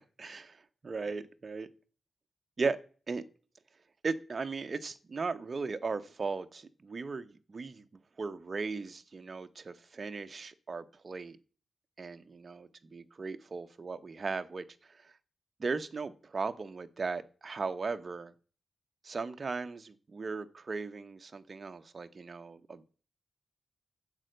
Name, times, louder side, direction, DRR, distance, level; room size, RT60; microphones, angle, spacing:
voice 1, 0.2-1.7 2.6-2.8 3.1-3.2 4.0-7.8 8.2-11.4 12.0-15.1 15.6-18.3 19.0-22.9, right 4 dB, 35° right, 0.8 m, -37 dB
9.7 x 7.6 x 7.7 m
wide cardioid pair, 155°, 0 cm